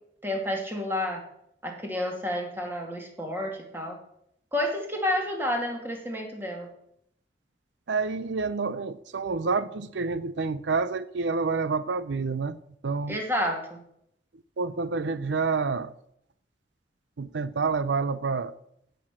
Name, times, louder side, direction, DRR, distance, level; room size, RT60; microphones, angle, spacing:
voice 1, 0.2-1.2 1.6-4.0 4.5-6.7 13.1-13.8, left 1 dB, 10° right, 2 dB, 2.4 m, -30 dB
voice 2, 7.9-12.6 12.8-13.2 14.6-15.9 17.2-18.5, right 4 dB, 85° right, 15 dB, 0.6 m, -28 dB
16.0 x 6.9 x 6.1 m, 0.74 s
head